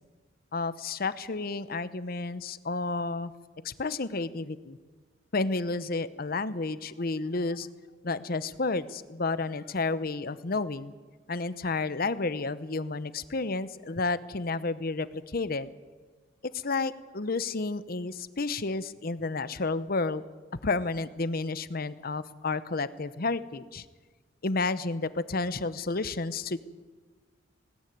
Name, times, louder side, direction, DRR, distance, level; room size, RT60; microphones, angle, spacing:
voice 1, 0.5-3.3 3.6-4.8 5.3-7.7 8.0-10.9 11.3-15.7 16.5-20.2 20.6-23.8 24.4-26.6, left 3 dB, 50° left, 14 dB, 0.8 m, -31 dB
19.5 x 17.5 x 9.3 m, 1.3 s
head